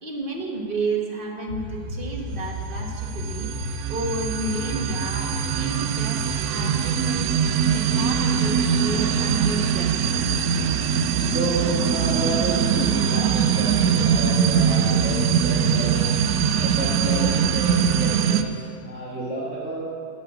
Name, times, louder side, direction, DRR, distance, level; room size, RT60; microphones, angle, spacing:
voice 1, 0.0-7.3 7.7-9.9, right 2 dB, 35° right, 0 dB, 1.3 m, -31 dB
sound 1, 1.5-17.9, right 2 dB, 50° right, 3.0 m, -32 dB
sound 2, 2.7-18.4, right 8 dB, 70° right, 1.0 m, -22 dB
voice 2, 11.2-16.1 16.5-19.9, right 2 dB, 5° right, -7 dB, 1.4 m, -30 dB
11.5 x 5.3 x 7.8 m, 2.2 s
omnidirectional pair, 1.8 m